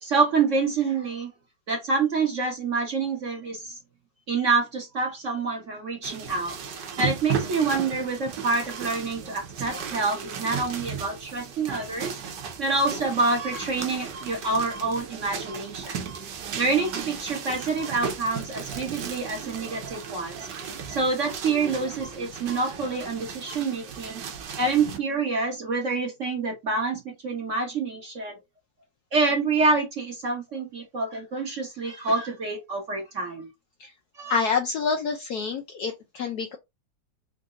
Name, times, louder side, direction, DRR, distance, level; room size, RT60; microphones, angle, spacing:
voice 1, 0.0-1.3 1.7-3.8 4.3-6.5 7.0-12.2 12.6-16.0 16.6-20.5 20.9-24.2 24.6-28.4 29.1-33.5 34.2-34.4, right 4 dB, 45° right, 1.1 m, -27 dB
sound 1, 6.0-25.0, right 7 dB, 65° right, 1.4 m, -35 dB
voice 2, 34.3-36.6, left 5 dB, 75° left, 0.9 m, -27 dB
3.9 x 2.6 x 3.7 m
omnidirectional pair, 2.2 m